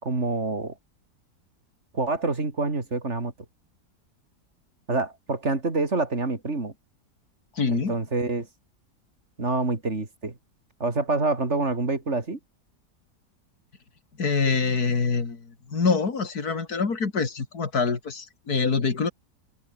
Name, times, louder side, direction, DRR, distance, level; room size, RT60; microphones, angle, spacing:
voice 1, 0.0-0.7 1.9-3.3 4.9-6.7 7.7-8.5 9.4-10.4 10.8-12.4, right 3 dB, 40° right, 3.5 m, -27 dB
voice 2, 7.6-8.0 14.2-19.1, left 4 dB, 65° left, 3.2 m, -25 dB
omnidirectional pair, 1.8 m